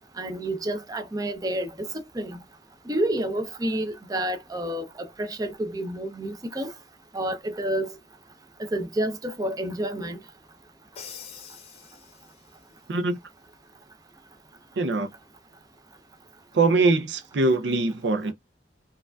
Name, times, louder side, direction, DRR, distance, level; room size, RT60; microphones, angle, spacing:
voice 1, 0.2-1.9 2.1-2.4 2.9-6.7 7.1-7.9 8.7-10.2, right 1 dB, 20° right, 0.6 m, -29 dB
Crash cymbal, 11.0-12.6, left 7 dB, 35° left, 0.7 m, -44 dB
voice 2, 14.8-15.1 16.5-18.3, right 3 dB, 70° right, 0.5 m, -22 dB
4.7 x 2.4 x 2.2 m
head